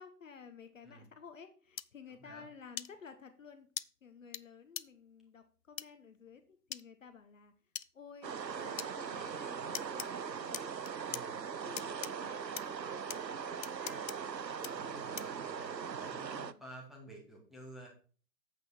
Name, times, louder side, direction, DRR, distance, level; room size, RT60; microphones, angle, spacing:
voice 1, 0.0-3.7 4.0-7.5 7.9-10.7 11.2-14.2 16.1-16.6, left 6 dB, 50° left, 9 dB, 1.1 m, -54 dB
sound 1, 1.8-1.9 2.8-2.9 3.8-3.9 4.3-4.4 4.8-4.9 5.8-5.9 6.7-6.8 7.8-7.9 8.8-8.9 9.7-10.1 10.5-11.2 11.8-12.1 12.6-12.7 13.1-13.2 13.6-14.2 14.6-14.7 15.2-15.4, left 7 dB, 85° left, 0.6 m, -40 dB
voice 2, 2.1-2.4 11.1-11.4 14.7-15.7 16.0-17.9, right 1 dB, ahead, -1 dB, 1.9 m, -52 dB
sound 2, 8.2-16.5, right 6 dB, 85° right, 0.7 m, -40 dB
9.0 x 8.1 x 4.2 m, 0.40 s
figure-of-eight pair, 130°, 49 cm